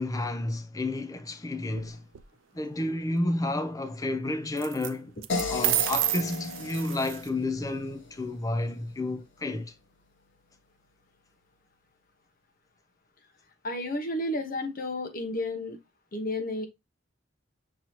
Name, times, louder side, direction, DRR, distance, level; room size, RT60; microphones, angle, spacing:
voice 1, 0.0-2.0 2.5-5.1 5.5-9.7, left 2 dB, 20° left, 0.5 m, -31 dB
sound 1, 1.7-2.2 4.6-4.9 5.2-7.3, right 16 dB, 85° right, 0.4 m, -30 dB
sound 2, 5.3-8.4, left 4 dB, 85° left, 1.1 m, -35 dB
voice 2, 13.6-15.8 16.1-16.7, left 1 dB, 45° left, 1.0 m, -31 dB
6.0 x 2.7 x 3.1 m
head